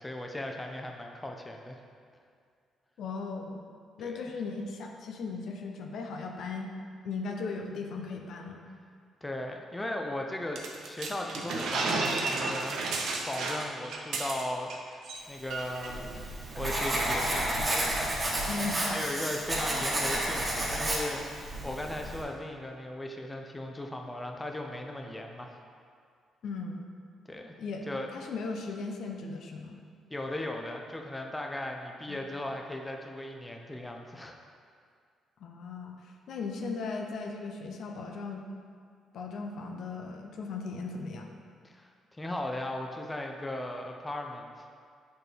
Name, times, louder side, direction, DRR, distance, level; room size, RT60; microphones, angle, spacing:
voice 1, 0.0-1.8 4.0-4.3 9.2-12.8 13.2-16.3 16.6-18.5 18.9-25.6 27.3-27.6 27.9-28.3 30.1-34.3 41.6-44.7, left 1 dB, 15° left, 2 dB, 0.6 m, -37 dB
voice 2, 3.0-3.6 4.0-6.7 7.0-8.6 18.5-18.9 26.4-26.8 27.6-27.9 28.1-29.8 32.1-32.2 35.4-38.4 39.1-41.3, left 4 dB, 70° left, 3 dB, 0.6 m, -37 dB
sound 1, 10.6-14.8 15.0-15.2 15.5-15.9, right 3 dB, 75° right, 0.7 m, -32 dB
Writing, 15.5-22.2, right 1 dB, 25° right, 1.4 m, -31 dB
6.6 x 4.5 x 3.3 m, 2.2 s
cardioid pair, 90°, 0 cm